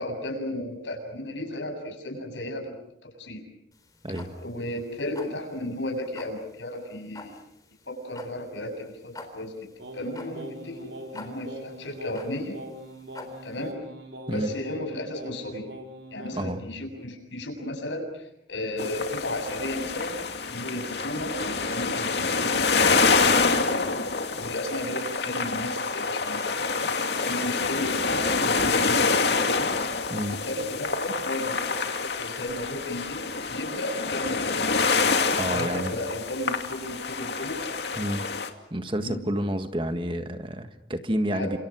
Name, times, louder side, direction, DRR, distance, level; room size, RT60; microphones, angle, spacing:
voice 1, 0.0-2.8 3.0-3.4 4.4-7.4 7.9-12.6 13.4-13.7 14.3-15.7 16.1-24.1 24.3-26.9 27.2-29.8 30.3-34.9 35.5-37.6 39.0-39.2 41.3-41.5, left 1 dB, 90° left, 5 dB, 7.5 m, -34 dB
sound 1, 3.7-13.7, left 2 dB, 20° left, 3.9 m, -46 dB
Singing, 9.8-16.6, right 1 dB, 85° right, 4.6 m, -42 dB
sound 2, 18.8-38.5, left 4 dB, 65° left, 2.4 m, -26 dB
voice 2, 35.3-35.9 38.0-38.3 38.7-41.6, right 1 dB, 30° right, 8 dB, 1.6 m, -29 dB
29.5 x 27.5 x 6.3 m, 0.78 s
head